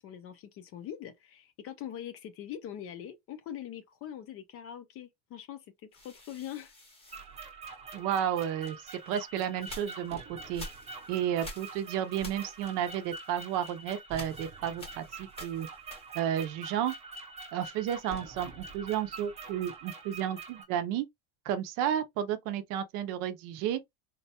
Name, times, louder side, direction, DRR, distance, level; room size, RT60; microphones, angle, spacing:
voice 1, 0.0-6.7, left 10 dB, 40° left, 0.4 m, -43 dB
sound 1, 5.9-8.1 8.8-16.4 16.7-18.4, equal, 15° left, 0.8 m, -49 dB
sound 2, 7.1-20.6, right 4 dB, 15° right, 0.6 m, -45 dB
voice 2, 7.9-8.8 9.1-10.6 11.1-15.7 16.1-16.9 17.5-21.0 21.4-23.8, right 10 dB, 60° right, 0.6 m, -32 dB
4.0 x 2.2 x 2.8 m
cardioid pair, 175°, 38 cm